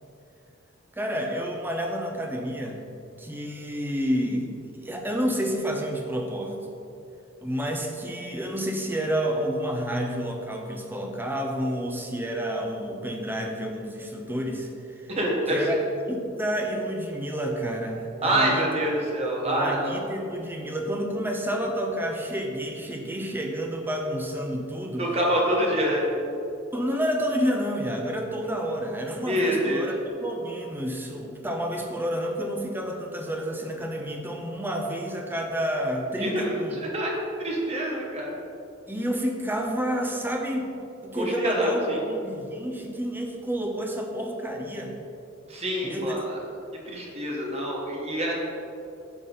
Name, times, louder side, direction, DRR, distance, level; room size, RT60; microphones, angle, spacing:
voice 1, 0.9-6.6 7.4-15.1 15.5-18.6 19.4-25.1 26.7-36.8 38.9-40.7 41.0-44.9 45.8-46.2, equal, 10° right, 1 dB, 0.8 m, -29 dB
voice 2, 15.1-15.6 18.2-20.0 25.0-26.0 29.2-29.9 36.2-37.1 37.4-38.3 41.1-42.0 45.5-46.4 46.9-48.4, right 1 dB, 35° right, -2 dB, 1.4 m, -26 dB
9.4 x 6.0 x 3.9 m, 2.7 s
head